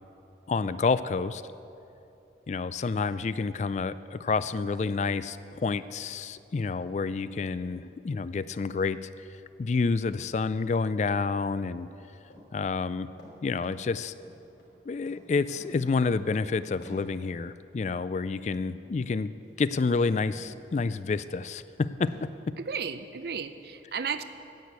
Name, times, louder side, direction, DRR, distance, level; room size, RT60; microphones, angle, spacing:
voice 1, 0.5-1.4 2.5-9.1 9.6-11.9 12.5-13.1 13.4-14.1 14.9-19.3 19.6-22.5, left 4 dB, 40° left, 15 dB, 0.3 m, -29 dB
sound 1, 12.3-12.5 12.8-13.8 14.2-14.7 15.1-15.2 15.5-15.9 16.2-16.3 16.8-17.1 19.4-19.6 20.3-20.7 21.2-21.3 22.0-22.3, equal, 85° left, 3.2 m, -50 dB
voice 2, 22.6-24.2, right 6 dB, 60° right, 11 dB, 0.6 m, -34 dB
10.5 x 8.3 x 8.2 m, 2.7 s
head